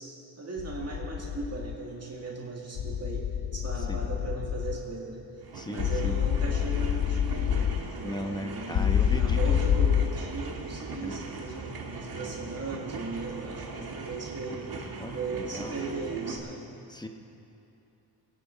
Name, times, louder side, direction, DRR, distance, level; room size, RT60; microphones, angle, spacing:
voice 1, 0.0-5.3 5.7-14.7 15.1-16.7, right 3 dB, 35° right, -2 dB, 2.2 m, -38 dB
sound 1, 0.6-1.7 2.8-4.8 5.8-7.8 8.7-10.1, left 9 dB, 75° left, 0.8 m, -27 dB
sound 2, 5.4-16.4, right 3 dB, 55° right, 1.7 m, -40 dB
voice 2, 5.5-6.2 8.0-9.7 10.9-11.2 15.0-15.8 16.9-17.1, equal, 10° left, 4 dB, 1.0 m, -37 dB
22.5 x 10.0 x 4.2 m, 2.8 s
cardioid pair, 100°, 43 cm